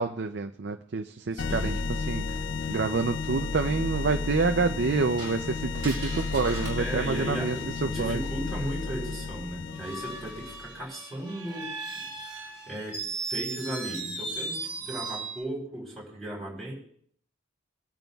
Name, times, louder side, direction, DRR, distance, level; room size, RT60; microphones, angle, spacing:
voice 1, 0.0-1.8 2.1-2.4 2.7-7.6 7.8-8.2, right 4 dB, 55° right, 6 dB, 0.5 m, -28 dB
voice 2, 1.3-1.8 6.8-11.7 12.0-13.0 13.3-16.7, right 1 dB, ahead, -4 dB, 3.9 m, -36 dB
sound 1, 1.4-10.8, left 4 dB, 60° left, 0.4 m, -33 dB
Screech, 5.2-8.1 9.7-15.4, right 3 dB, 20° right, 2.1 m, -38 dB
23.0 x 9.1 x 2.3 m, 0.62 s
head